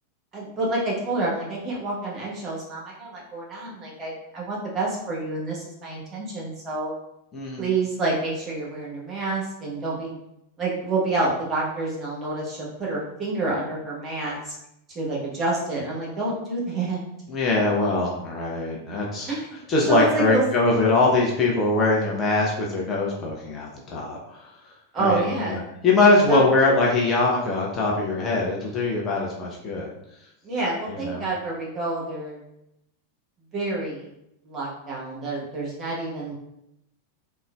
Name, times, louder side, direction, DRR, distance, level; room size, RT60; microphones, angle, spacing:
voice 1, 0.3-6.9 7.6-10.2 10.6-14.5 14.9-17.0 19.3-19.6 19.9-20.4 24.9-25.7 26.3-26.4 30.4-32.4 33.5-34.1 34.4-36.3, right 3 dB, 25° right, -4 dB, 0.9 m, -28 dB
voice 2, 7.3-7.7 17.3-19.3 19.7-24.4 25.0-25.6 25.8-29.9 30.9-31.3, left 3 dB, 25° left, -3 dB, 0.5 m, -22 dB
3.6 x 2.1 x 2.2 m, 0.82 s
figure-of-eight pair, 90°, 0 cm